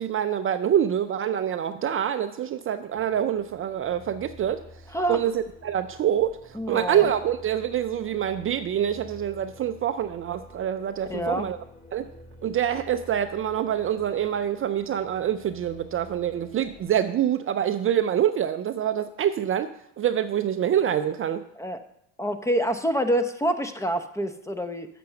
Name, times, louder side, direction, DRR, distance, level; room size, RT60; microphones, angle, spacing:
voice 1, 0.0-4.6 5.1-11.6 11.9-12.1 12.4-21.4, right 10 dB, 35° right, 10 dB, 0.5 m, -26 dB
sound 1, 3.0-17.0, left 1 dB, 25° left, 3.5 m, -49 dB
voice 2, 6.5-7.1 11.1-11.5 21.6-21.8 22.2-24.9, equal, 10° left, 9 dB, 0.7 m, -26 dB
6.9 x 6.0 x 6.6 m, 0.76 s
supercardioid pair, 90°, 36 cm